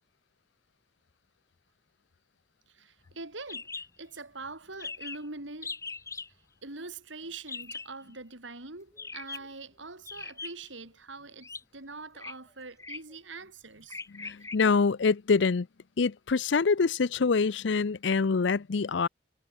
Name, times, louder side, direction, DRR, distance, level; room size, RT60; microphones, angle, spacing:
voice 1, 2.7-5.8 6.6-14.0, right 3 dB, 80° right, 3.9 m, -44 dB
sound 1, 3.5-3.9 4.2-4.3 4.5-4.6 4.8-5.3 5.6-6.3 7.5-7.9 8.9-9.5 10.1-10.7 11.4-11.6 12.1-12.3 12.8-13.1 13.9-14.6, left 4 dB, 15° left, 1.2 m, -40 dB
voice 2, 14.1-15.7 16.0-19.1, left 4 dB, 70° left, 0.5 m, -25 dB
head